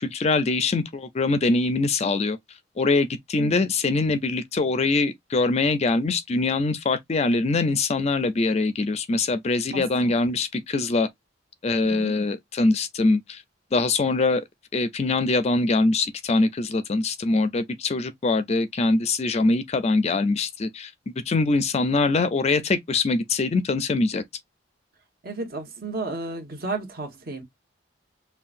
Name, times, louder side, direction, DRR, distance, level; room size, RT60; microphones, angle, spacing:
voice 1, 0.0-2.4 2.8-11.1 11.6-13.4 13.7-14.4 14.7-20.9 21.3-24.2, left 3 dB, 35° left, 0.4 m, -23 dB
voice 2, 9.7-10.0 11.8-12.1 25.2-27.4, right 3 dB, 50° right, 1.2 m, -33 dB
5.6 x 2.3 x 2.5 m
head